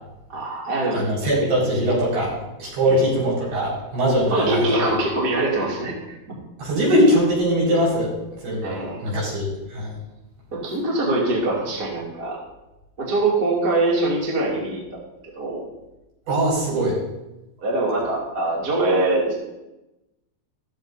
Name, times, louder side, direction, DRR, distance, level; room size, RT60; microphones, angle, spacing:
voice 1, 0.3-1.1 1.3-1.5 2.8-3.1 4.3-6.2 8.6-9.1 10.5-12.4 13.0-15.6 17.6-19.3, right 2 dB, 25° right, -5 dB, 2.7 m, -23 dB
voice 2, 0.9-2.3 2.6-4.8 6.6-8.1 8.4-10.0 16.3-17.0, equal, 65° right, -6 dB, 7.3 m, -21 dB
15.0 x 14.5 x 2.8 m, 0.97 s
omnidirectional pair, 4.9 m